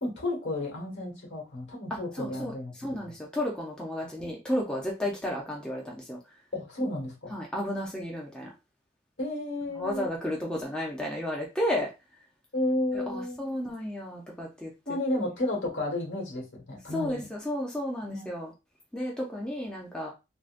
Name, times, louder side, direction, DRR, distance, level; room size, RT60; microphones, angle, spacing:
voice 1, 0.0-3.1 4.0-4.1 6.5-7.3 9.2-10.1 12.5-13.6 14.9-17.2 18.0-18.3, left 1 dB, 65° left, -1 dB, 1.4 m, -32 dB
voice 2, 2.2-2.5 2.8-6.2 7.3-8.5 9.8-11.9 12.9-14.7 16.9-18.5 18.9-20.1, left 1 dB, 5° left, -2 dB, 0.5 m, -32 dB
3.7 x 2.1 x 2.5 m, 0.26 s
head